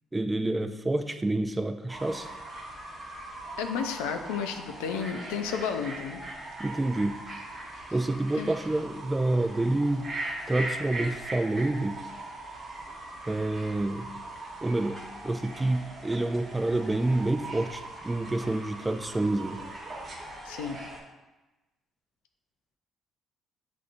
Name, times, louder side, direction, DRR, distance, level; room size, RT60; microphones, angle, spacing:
voice 1, 0.1-2.3 6.6-7.2 7.9-10.1 10.5-12.0 13.3-14.1 14.6-19.6, right 2 dB, 20° right, 8 dB, 0.3 m, -28 dB
Fowl / Bird, 1.9-21.0, right 2 dB, 40° right, 1.2 m, -40 dB
voice 2, 3.6-6.2 8.4-8.5 20.4-20.8, left 6 dB, 90° left, 6 dB, 0.3 m, -32 dB
6.6 x 2.5 x 2.5 m, 1.1 s
supercardioid pair, 65°, 0 cm